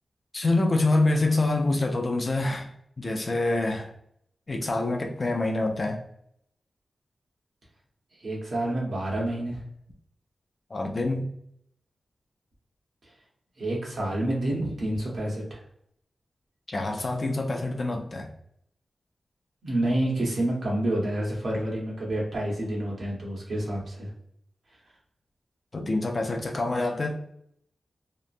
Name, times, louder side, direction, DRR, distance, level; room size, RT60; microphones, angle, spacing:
voice 1, 0.3-2.7 3.0-3.9 4.5-6.0 10.7-11.3 16.7-18.3 25.7-27.1, left 2 dB, 35° left, 2 dB, 0.4 m, -26 dB
voice 2, 8.2-9.6 13.6-15.6 19.6-24.1, right 1 dB, 60° right, -4 dB, 1.0 m, -28 dB
2.9 x 2.2 x 2.4 m, 0.71 s
wide cardioid pair, 160°, 0 cm